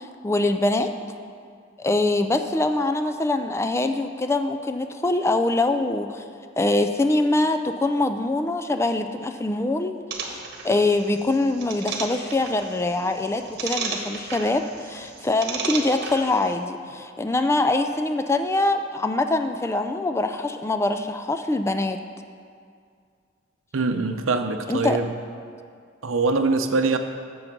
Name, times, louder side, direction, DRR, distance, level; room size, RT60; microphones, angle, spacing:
voice 1, 0.2-0.9 1.8-6.2 6.6-9.9 10.3-10.4 10.6-22.0 24.7-25.0, left 2 dB, 15° left, 7 dB, 0.3 m, -23 dB
sound 1, 10.1-16.6, right 4 dB, 55° right, 1.2 m, -34 dB
voice 2, 23.7-25.1 26.0-27.0, right 3 dB, 85° right, 8 dB, 0.7 m, -23 dB
8.8 x 7.0 x 6.0 m, 2.2 s
head